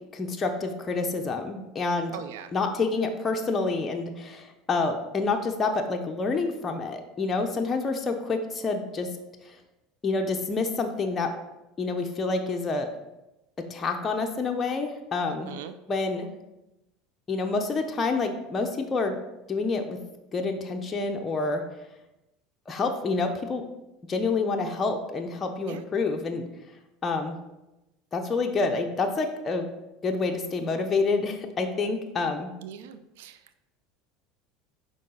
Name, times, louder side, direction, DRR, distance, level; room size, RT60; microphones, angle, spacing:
voice 1, 0.1-2.2 2.5-9.1 10.0-11.3 11.8-12.9 13.7-15.5 15.9-16.3 17.3-19.2 19.5-20.0 20.3-21.6 22.7-23.6 24.1-26.5 27.0-27.3 28.1-29.7 30.0-32.5, left 3 dB, 25° left, 3 dB, 0.7 m, -28 dB
voice 2, 2.1-2.5 15.3-15.7 25.7-25.8 32.6-33.6, right 9 dB, 80° right, 11 dB, 0.4 m, -41 dB
6.5 x 4.8 x 3.8 m, 0.96 s
supercardioid pair, 95°, 0 cm